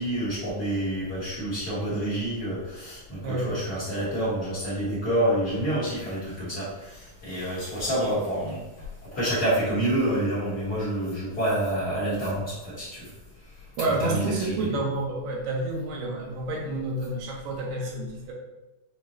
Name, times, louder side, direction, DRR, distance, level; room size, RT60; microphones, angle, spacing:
voice 1, 0.0-8.6 9.0-13.1 14.0-14.7, right 1 dB, 60° left, -12 dB, 1.0 m, -28 dB
voice 2, 13.8-18.3, right 2 dB, 80° right, -1 dB, 2.5 m, -29 dB
6.0 x 2.8 x 3.0 m, 1.0 s
omnidirectional pair, 3.9 m